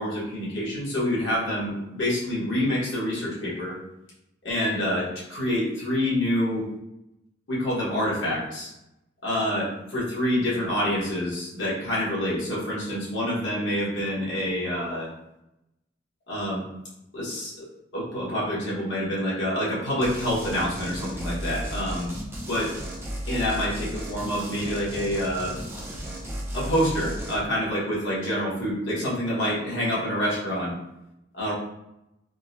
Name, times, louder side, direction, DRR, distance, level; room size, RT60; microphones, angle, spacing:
voice 1, 0.0-3.8 4.4-6.6 7.5-8.7 9.2-15.1 16.3-16.6 17.1-17.7 17.9-22.1 22.5-22.8 23.2-25.5 26.5-30.7 31.3-31.5, equal, 70° left, -7 dB, 1.1 m, -27 dB
sound 1, 20.0-27.4, equal, 15° right, 0.4 m, -34 dB
3.7 x 2.1 x 2.5 m, 0.87 s
head